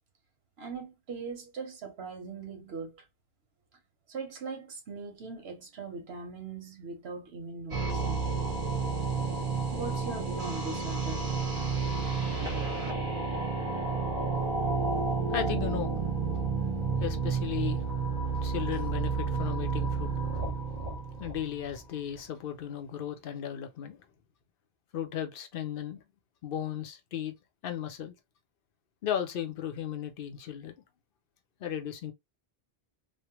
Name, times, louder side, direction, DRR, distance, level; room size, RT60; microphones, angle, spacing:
voice 1, 0.6-3.0 4.1-8.3 9.7-11.2, right 4 dB, 85° right, 1.1 m, -40 dB
sound 1, 7.7-21.8, right 4 dB, 40° right, 1.2 m, -31 dB
voice 2, 14.4-18.0 18.3-20.7 21.1-24.1 24.9-26.0 26.4-27.3 27.6-28.1 29.0-30.7 31.6-32.1, left 10 dB, 65° left, 0.7 m, -36 dB
3.2 x 2.1 x 2.8 m
omnidirectional pair, 1.0 m